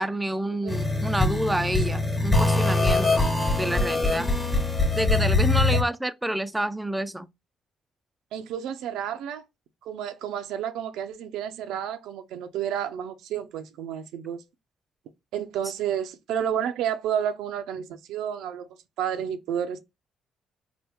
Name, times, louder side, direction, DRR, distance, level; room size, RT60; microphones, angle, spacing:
voice 1, 0.0-4.3 5.0-7.3, right 1 dB, 10° right, 0.3 m, -28 dB
sound 1, 0.7-5.8, left 2 dB, 20° left, 1.0 m, -23 dB
voice 2, 8.3-9.4 9.9-14.4 15.3-18.7 19.0-19.8, right 9 dB, 90° right, 0.5 m, -30 dB
2.9 x 2.2 x 3.4 m
cardioid pair, 90°, 0 cm